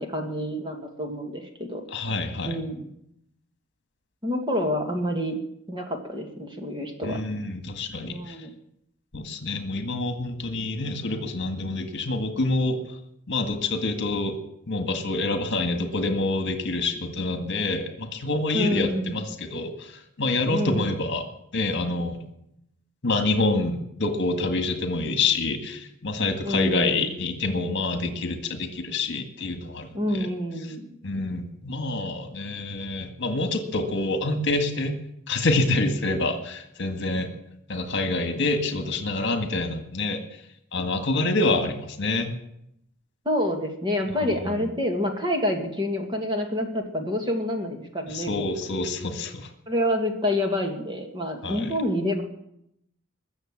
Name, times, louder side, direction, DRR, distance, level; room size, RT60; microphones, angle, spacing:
voice 1, 0.0-1.8 2.5-2.9 4.2-5.4 5.7-7.2 8.1-8.5 18.5-19.2 20.5-20.9 26.4-27.1 29.9-30.9 43.3-48.5 49.7-52.2, left 1 dB, 20° right, 3 dB, 2.1 m, -28 dB
voice 2, 1.9-2.6 7.0-8.4 9.1-12.8 13.3-14.4 14.7-21.2 21.5-22.2 23.0-30.3 31.0-35.0 35.3-37.3 37.7-40.2 40.7-42.3 44.6-44.7 48.1-49.5 51.4-51.7, left 2 dB, 55° left, 6 dB, 1.9 m, -27 dB
21.5 x 7.2 x 7.5 m, 0.77 s
head